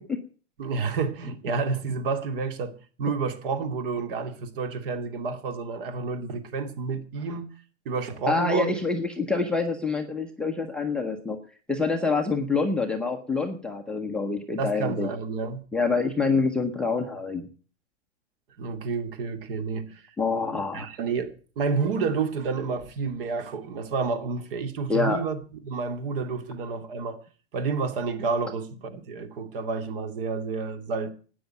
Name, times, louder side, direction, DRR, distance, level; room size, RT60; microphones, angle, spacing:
voice 1, 0.6-7.5 7.9-8.8 14.6-15.6 18.6-20.0 20.7-27.2 27.5-31.1, right 4 dB, 50° right, 2.6 m, -30 dB
voice 2, 8.3-11.4 11.7-15.1 15.7-17.5 20.2-20.9 24.9-25.2, left 4 dB, 5° left, 0.8 m, -26 dB
12.5 x 9.4 x 9.1 m
hypercardioid pair, 155°, 35 cm